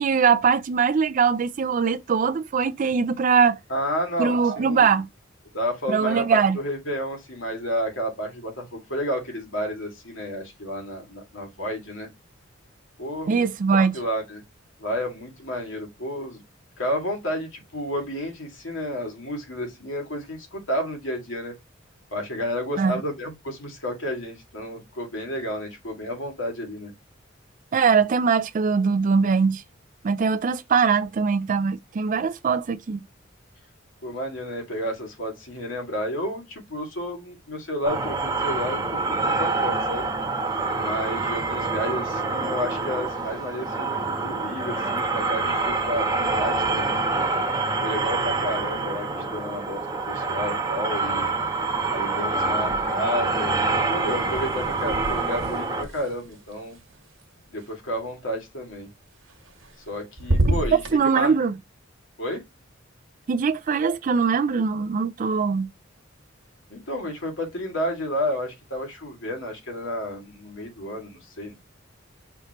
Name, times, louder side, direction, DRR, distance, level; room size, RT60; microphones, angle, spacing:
voice 1, 0.0-3.6 4.2-5.1 5.9-6.6 13.3-13.9 22.8-23.0 27.7-29.6 30.0-33.0 60.9-61.5 63.3-65.7, right 5 dB, 40° right, 0.4 m, -21 dB
voice 2, 3.7-4.9 5.5-12.1 13.0-13.4 13.7-14.4 14.8-16.4 16.8-21.5 22.1-26.9 34.0-40.1 40.8-47.1 47.8-51.3 51.9-56.8 57.5-58.9 59.9-61.4 62.2-62.4 66.7-71.5, equal, 80° left, 2.2 m, -31 dB
sound 1, 37.8-55.8, right 3 dB, 20° right, 1.1 m, -26 dB
sound 2, 52.6-53.3 53.5-57.7 59.3-59.9 60.2-61.0, right 1 dB, 85° right, 1.4 m, -29 dB
5.7 x 3.1 x 2.9 m
head